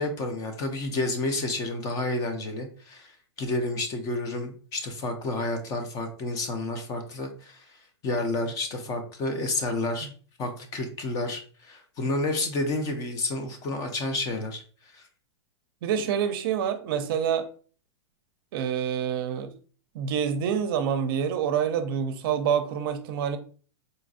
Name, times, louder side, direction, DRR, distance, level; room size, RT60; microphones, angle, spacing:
voice 1, 0.0-3.1 3.4-7.6 8.0-10.1 10.4-14.6 14.9-15.0, left 2 dB, 20° left, 0.5 m, -30 dB
voice 2, 15.8-17.5 18.5-19.5 19.9-23.4, right 8 dB, 50° right, 0.5 m, -27 dB
3.9 x 2.5 x 2.5 m
hypercardioid pair, 155°, 15 cm